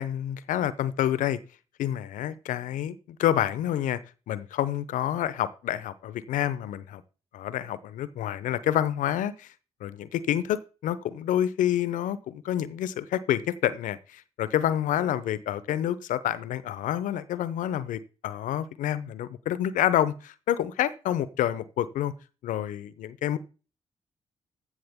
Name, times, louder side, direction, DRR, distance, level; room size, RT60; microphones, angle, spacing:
voice 1, 0.0-1.4 1.8-4.0 4.3-7.0 7.3-9.5 9.8-22.1 22.4-23.4, left 11 dB, 75° left, 16 dB, 0.7 m, -28 dB
14.5 x 6.2 x 3.6 m, 0.34 s
hypercardioid pair, 45°, 13 cm